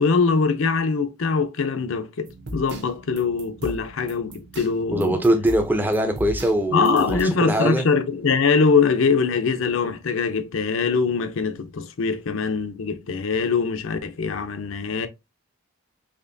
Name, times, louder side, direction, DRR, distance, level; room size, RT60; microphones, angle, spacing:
voice 1, 0.0-2.3 2.5-5.2 6.7-15.1, left 5 dB, 70° left, 0.5 m, -22 dB
sound 1, 2.3-7.2, equal, 55° right, 0.8 m, -38 dB
voice 2, 4.9-7.9, right 1 dB, 10° right, 0.5 m, -22 dB
4.3 x 2.9 x 2.6 m
head